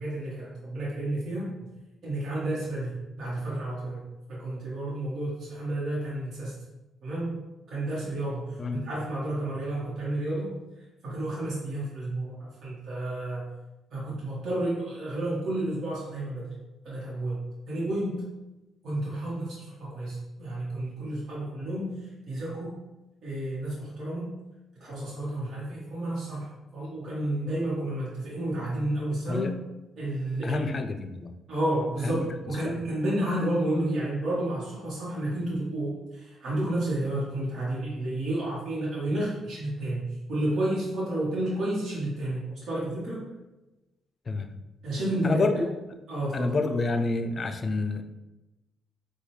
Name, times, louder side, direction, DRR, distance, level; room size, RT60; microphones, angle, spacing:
voice 1, 0.0-1.5 2.0-6.6 7.0-7.4 7.7-10.5 11.0-13.5 13.9-16.5 16.8-18.3 18.8-22.0 22.3-22.8 23.2-24.3 24.8-29.5 30.0-30.6 31.5-43.2 44.8-45.6 46.1-46.6, right 1 dB, 60° right, -7 dB, 1.1 m, -31 dB
voice 2, 30.4-31.3 32.0-32.2 44.3-44.5 45.2-45.7 46.3-48.0, left 3 dB, 40° left, 7 dB, 0.4 m, -28 dB
4.1 x 2.3 x 3.2 m, 1.0 s
cardioid pair, 90°, 0 cm